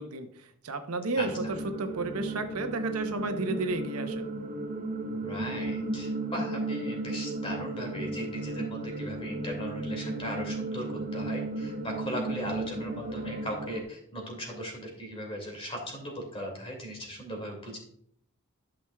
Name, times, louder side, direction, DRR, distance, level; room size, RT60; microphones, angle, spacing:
voice 1, 0.0-1.3 1.8-4.3, right 3 dB, 90° right, 7 dB, 0.9 m, -32 dB
sound 1, 1.2-13.8, right 2 dB, 40° right, 0.9 m, -34 dB
voice 2, 5.1-17.8, equal, 25° left, 1 dB, 2.3 m, -38 dB
11.5 x 6.1 x 2.3 m, 0.66 s
head